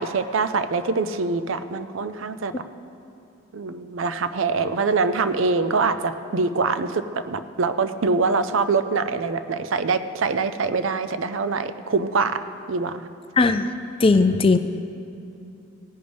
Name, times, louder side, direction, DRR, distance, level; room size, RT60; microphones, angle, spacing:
voice 1, 0.0-2.5 3.5-12.4 12.7-13.0, right 4 dB, 60° right, 11 dB, 0.5 m, -24 dB
voice 2, 13.4-13.7 14.0-14.6, left 3 dB, 25° left, 10 dB, 0.3 m, -17 dB
17.5 x 10.5 x 3.4 m, 2.6 s
head